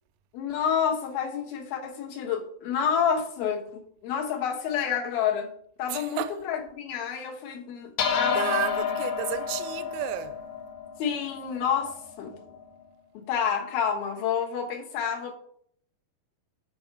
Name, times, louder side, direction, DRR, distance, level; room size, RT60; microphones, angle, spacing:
voice 1, 0.3-5.5 5.8-8.4 11.0-12.4 13.1-15.3, left 7 dB, 85° left, 3.2 m, -29 dB
voice 2, 5.9-6.3 8.4-10.4, right 14 dB, 85° right, 2.4 m, -32 dB
sound 1, 8.0-12.6, left 7 dB, 60° left, 2.0 m, -30 dB
8.0 x 4.6 x 5.9 m
omnidirectional pair, 4.1 m